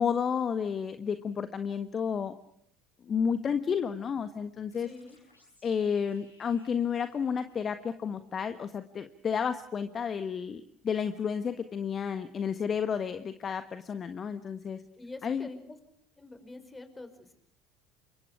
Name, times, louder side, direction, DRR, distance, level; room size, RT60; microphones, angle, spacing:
voice 1, 0.0-2.3 3.1-4.9 5.6-14.8 15.2-15.5, left 7 dB, 35° left, 10 dB, 1.5 m, -31 dB
sound 1, 4.7-8.2, left 1 dB, 90° left, 8.0 m, -65 dB
voice 2, 4.8-5.2 15.0-15.8 16.2-17.3, left 2 dB, 15° left, 9 dB, 5.3 m, -46 dB
29.0 x 25.0 x 4.9 m, 0.69 s
figure-of-eight pair, 60°, 0 cm